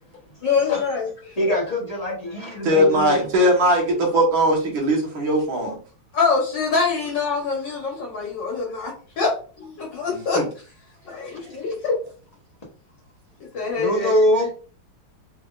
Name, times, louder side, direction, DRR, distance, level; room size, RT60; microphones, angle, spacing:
voice 1, 0.4-1.4 6.1-10.4 11.0-12.0 13.5-14.1, left 5 dB, 60° left, -2 dB, 1.5 m, -24 dB
voice 2, 1.4-3.2 13.8-14.5, equal, 35° left, -4 dB, 0.6 m, -22 dB
voice 3, 2.6-5.7 10.4-10.5, equal, 65° right, -1 dB, 2.1 m, -19 dB
4.3 x 3.4 x 2.4 m, 0.39 s
omnidirectional pair, 2.3 m